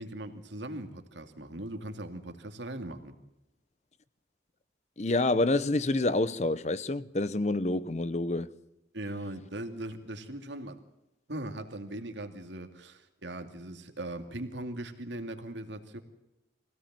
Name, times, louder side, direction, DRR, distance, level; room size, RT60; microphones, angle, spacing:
voice 1, 0.0-3.1 8.9-10.8 11.3-16.0, right 1 dB, 85° right, 2.5 m, -39 dB
voice 2, 5.0-8.5, left 2 dB, 40° left, 0.8 m, -28 dB
24.0 x 17.0 x 7.6 m
head